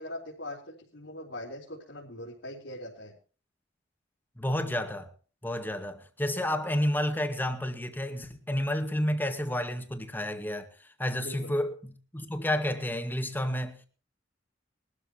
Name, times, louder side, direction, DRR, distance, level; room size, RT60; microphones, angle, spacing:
voice 1, 0.0-3.2 11.2-11.5, left 1 dB, 75° left, 4.0 m, -41 dB
voice 2, 4.4-5.1 5.4-10.7 11.0-13.8, left 1 dB, 10° left, 2.0 m, -30 dB
22.0 x 13.0 x 3.1 m
head